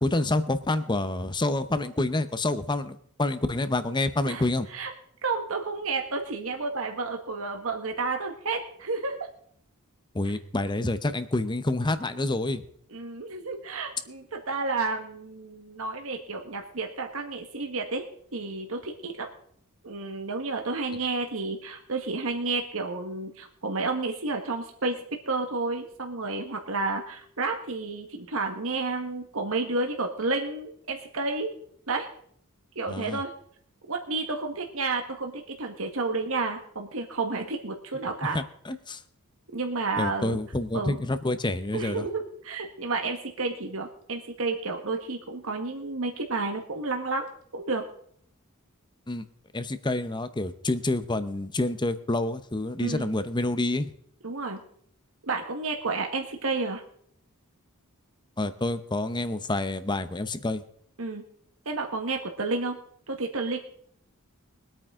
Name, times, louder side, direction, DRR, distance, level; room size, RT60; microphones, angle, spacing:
voice 1, 0.0-4.7 10.1-12.6 32.9-33.2 38.3-39.0 40.0-42.0 49.1-49.2 49.5-53.9 58.4-60.6, left 2 dB, 20° left, 12 dB, 0.8 m, -28 dB
voice 2, 5.2-9.2 12.9-18.1 18.3-19.3 19.8-25.0 25.2-31.5 31.9-32.1 32.7-33.3 33.9-38.4 39.5-40.4 40.7-41.0 41.7-47.8 52.8-53.1 54.2-54.6 55.2-56.8 61.0-61.2 61.6-62.8 63.1-63.6, right 3 dB, 70° right, 3 dB, 1.6 m, -31 dB
22.5 x 8.9 x 3.7 m, 0.64 s
head